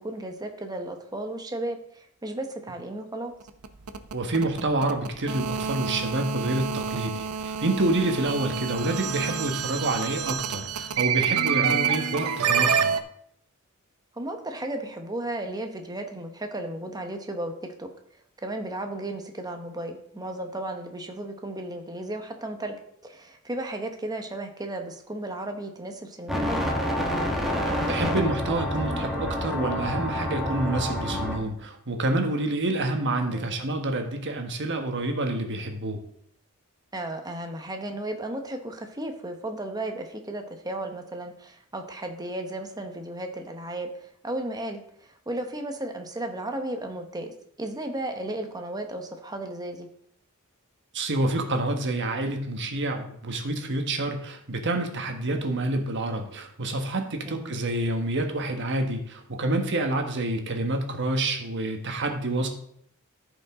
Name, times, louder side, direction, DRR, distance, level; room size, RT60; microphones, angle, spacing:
voice 1, 0.0-3.3 14.1-17.5 17.8-17.9 18.4-22.8 23.0-26.7 33.3-33.6 36.9-49.9 57.2-57.5, right 1 dB, 20° right, 5 dB, 1.1 m, -34 dB
sound 1, 3.4-13.0, right 7 dB, 75° right, 0.6 m, -28 dB
voice 2, 4.1-12.9 27.9-36.0 50.9-62.5, right 2 dB, 55° right, 4 dB, 1.3 m, -28 dB
sound 2, 26.3-31.4, left 1 dB, ahead, 1.5 m, -28 dB
14.0 x 5.3 x 3.7 m, 0.68 s
head